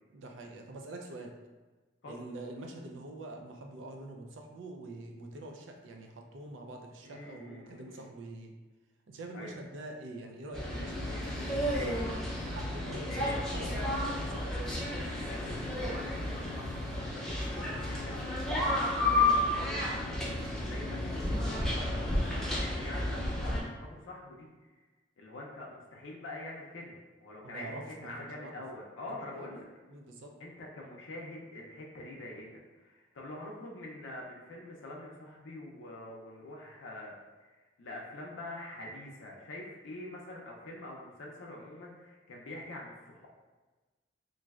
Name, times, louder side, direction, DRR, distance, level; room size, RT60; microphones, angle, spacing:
voice 1, 0.1-1.3 2.1-8.5 9.1-11.9 12.5-14.9 20.4-20.5 27.4-28.5 29.1-29.5 29.9-30.3, right 2 dB, 85° right, 2 dB, 0.4 m, -45 dB
voice 2, 7.0-8.1 9.3-9.6 11.1-11.2 11.7-12.0 13.1-13.4 13.7-13.9 14.3-14.5 15.2-24.7 25.2-27.0 27.2-29.7 30.4-32.5 32.8-37.1 37.4-37.5 37.8-43.3, left 1 dB, 85° left, -2 dB, 0.5 m, -45 dB
sound 1, 10.5-23.6, left 1 dB, 5° left, 0.4 m, -32 dB
3.1 x 2.5 x 2.3 m, 1.2 s
head